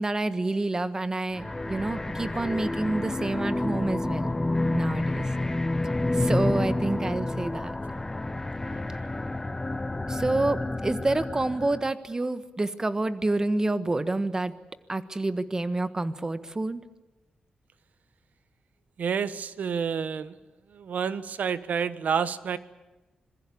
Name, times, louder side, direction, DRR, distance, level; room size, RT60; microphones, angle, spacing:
voice 1, 0.0-4.3 4.7-5.3 6.1-7.7 10.1-14.5 14.9-16.8, right 2 dB, 25° right, 12 dB, 1.4 m, -28 dB
sound 1, 1.3-11.9, left 2 dB, 15° left, 0.8 m, -29 dB
voice 2, 8.6-9.1 19.0-20.3 20.7-22.6, right 6 dB, 75° right, 14 dB, 1.3 m, -29 dB
26.5 x 21.5 x 8.6 m, 1.0 s
wide cardioid pair, 120°, 3 cm